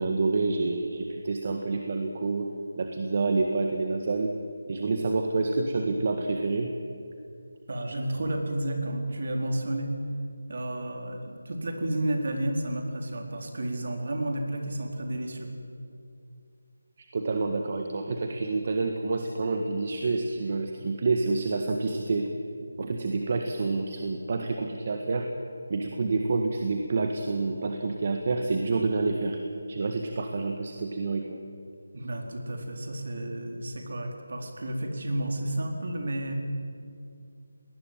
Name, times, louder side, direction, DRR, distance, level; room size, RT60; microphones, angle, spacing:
voice 1, 0.0-2.5 2.8-4.3 4.7-6.7 17.0-22.3 22.8-25.3 25.7-29.4 29.7-31.4, right 3 dB, 35° right, 4 dB, 1.7 m, -28 dB
voice 2, 7.7-9.9 10.5-15.5 31.9-36.3, right 1 dB, 55° right, 2 dB, 4.4 m, -31 dB
22.0 x 19.5 x 9.2 m, 2.5 s
figure-of-eight pair, 170°, 0 cm